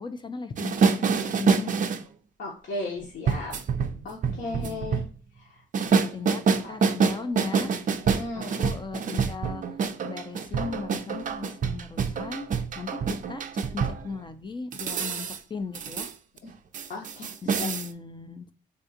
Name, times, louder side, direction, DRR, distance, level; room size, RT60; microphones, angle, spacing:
voice 1, 0.0-2.0 3.9-5.0 5.9-7.7 8.4-9.6 10.0-16.1 17.4-18.5, left 4 dB, 25° left, 9 dB, 0.4 m, -37 dB
sound 1, 0.6-2.0 3.3-5.1 5.7-14.1 14.7-15.4 15.7-16.1 16.4-16.5 16.7-17.9, right 5 dB, 40° right, 0.4 m, -26 dB
voice 2, 2.4-3.5 4.0-5.0 5.5-5.6 6.6-6.8 7.1-7.3 8.1-8.6 16.9-17.7, left 2 dB, 65° left, -3 dB, 0.9 m, -35 dB
3.5 x 2.3 x 2.6 m, 0.41 s
cardioid pair, 90°, 20 cm